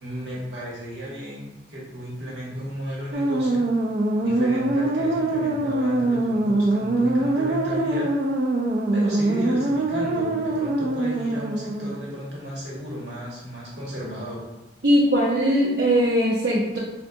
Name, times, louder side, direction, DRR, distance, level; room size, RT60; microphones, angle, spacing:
voice 1, 0.0-3.7 4.2-8.1 8.9-14.4, equal, 65° right, -5 dB, 1.1 m, -34 dB
sound 1, 3.1-12.1, right 2 dB, 50° right, 0.3 m, -23 dB
voice 2, 14.8-16.8, equal, 80° right, -9 dB, 0.7 m, -20 dB
3.7 x 2.2 x 2.6 m, 0.97 s
head